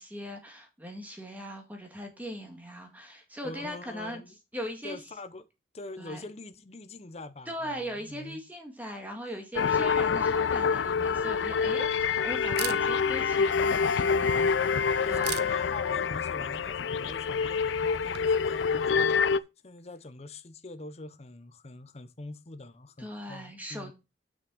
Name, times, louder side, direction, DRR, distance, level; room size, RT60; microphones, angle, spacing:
voice 1, 0.0-4.2 4.5-5.0 6.0-6.2 7.5-14.5 14.8-15.3 23.0-23.9, equal, 10° right, 1.9 m, -39 dB
voice 2, 3.4-4.3 4.8-5.4 5.7-8.4 15.0-19.2 19.6-23.9, left 2 dB, 35° left, 0.8 m, -43 dB
sound 1, 9.6-19.4, left 6 dB, 80° left, 0.4 m, -26 dB
Camera, 10.2-18.5, right 12 dB, 60° right, 0.6 m, -45 dB
6.4 x 6.2 x 6.2 m
head